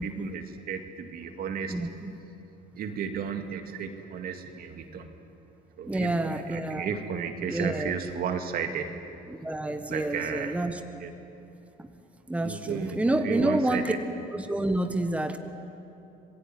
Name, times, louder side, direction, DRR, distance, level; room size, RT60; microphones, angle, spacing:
voice 1, 0.0-1.8 2.7-5.1 5.8-8.9 9.9-10.6 11.0-11.1 12.4-14.0, right 7 dB, 60° right, 6 dB, 2.3 m, -33 dB
voice 2, 1.7-2.1 5.8-6.9 7.5-7.9 9.3-10.7 11.8-11.9 12.3-13.9 14.3-15.4, right 1 dB, 10° right, 7 dB, 1.4 m, -28 dB
26.5 x 19.0 x 9.5 m, 2.8 s
cardioid pair, 110°, 17 cm